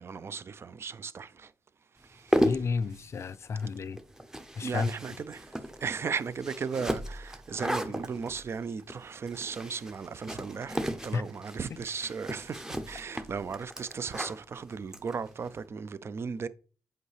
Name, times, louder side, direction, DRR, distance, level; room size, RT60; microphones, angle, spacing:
voice 1, 0.0-1.5 1.9-2.5 4.6-16.5, right 5 dB, 45° right, 0.5 m, -36 dB
sound 1, 2.1-15.6, equal, 10° right, 0.7 m, -35 dB
voice 2, 2.4-4.0 4.6-4.9 11.1-11.2, left 5 dB, 50° left, 0.4 m, -31 dB
7.9 x 4.7 x 3.3 m
cardioid pair, 95°, 6 cm